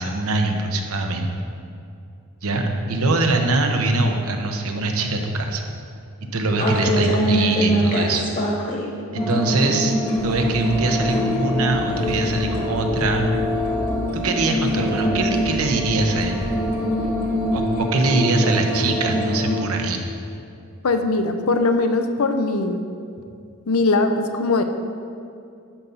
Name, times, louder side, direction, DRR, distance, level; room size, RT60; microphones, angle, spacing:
voice 1, 0.0-1.3 2.4-5.6 6.3-8.2 9.1-9.9 10.2-13.3 14.2-16.5 17.5-20.0, right 2 dB, 85° right, 3 dB, 1.0 m, -22 dB
sound 1, 6.6-8.9 9.2-19.6, equal, 40° left, 1.4 m, -24 dB
sound 2, 10.2-17.6, equal, 10° left, 0.5 m, -34 dB
voice 2, 20.8-22.8 23.7-24.6, left 3 dB, 80° left, 7 dB, 0.7 m, -20 dB
10.0 x 6.9 x 4.0 m, 2.5 s
head